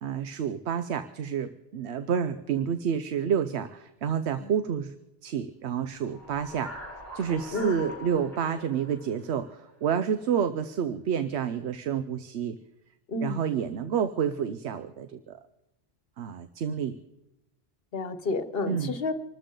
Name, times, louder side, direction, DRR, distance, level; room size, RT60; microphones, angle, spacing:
voice 1, 0.0-4.9 5.2-6.7 7.1-12.6 13.2-15.4 16.2-17.0 18.7-18.9, right 8 dB, 90° right, 11 dB, 1.0 m, -29 dB
sound 1, 5.9-10.2, left 1 dB, 55° right, 7.6 m, -43 dB
voice 2, 13.1-13.4 17.9-19.1, left 3 dB, 65° left, 11 dB, 1.2 m, -30 dB
26.5 x 13.0 x 3.8 m, 0.94 s
omnidirectional pair, 1.1 m